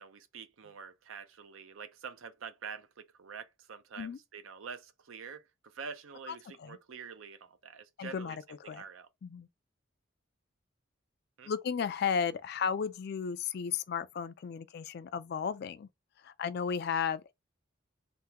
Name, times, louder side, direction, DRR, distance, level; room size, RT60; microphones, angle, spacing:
voice 1, 0.0-9.1 11.4-11.5, right 6 dB, 80° right, 0.5 m, -46 dB
voice 2, 8.0-8.8 9.2-9.5 11.5-15.9 16.2-17.3, left 6 dB, 55° left, 0.3 m, -34 dB
3.5 x 2.2 x 2.8 m
head